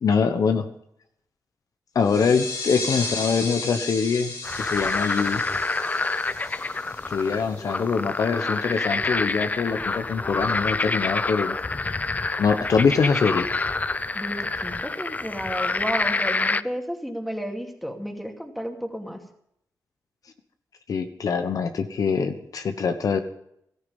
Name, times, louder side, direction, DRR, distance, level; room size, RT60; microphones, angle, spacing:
voice 1, 0.0-0.7 1.9-5.4 7.1-11.6 12.4-13.5 20.9-23.2, left 5 dB, 65° left, 8 dB, 1.2 m, -24 dB
sound 1, 2.0-7.3, left 3 dB, 80° left, 4.8 m, -34 dB
sound 2, 4.4-16.6, left 3 dB, 25° left, 0.5 m, -27 dB
voice 2, 14.1-19.2, equal, ahead, 3 dB, 2.6 m, -32 dB
15.5 x 13.5 x 5.5 m, 0.74 s
cardioid pair, 85°, 7 cm